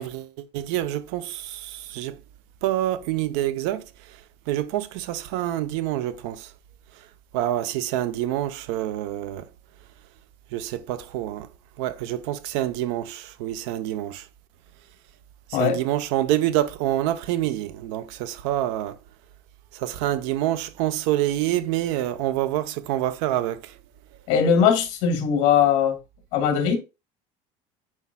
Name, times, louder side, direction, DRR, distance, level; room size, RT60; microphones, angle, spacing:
voice 1, 0.0-2.2 2.6-4.2 4.5-6.5 7.3-9.5 10.5-11.5 11.8-14.2 15.5-19.0 19.7-23.7, right 13 dB, 80° right, 0.7 m, -27 dB
voice 2, 24.3-26.0 26.3-26.8, left 7 dB, 55° left, 2.1 m, -20 dB
9.7 x 4.7 x 2.2 m
cardioid pair, 175°, 14 cm